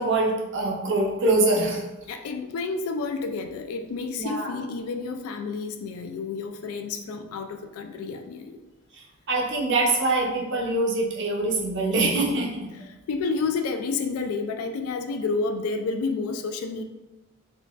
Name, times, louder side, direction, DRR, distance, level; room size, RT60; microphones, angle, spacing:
voice 1, 0.0-1.8 4.1-4.5 9.3-12.6, right 2 dB, 60° right, -1 dB, 0.6 m, -24 dB
voice 2, 2.1-8.6 13.1-16.8, left 4 dB, 75° left, 6 dB, 0.3 m, -30 dB
3.7 x 2.2 x 2.3 m, 1.0 s
head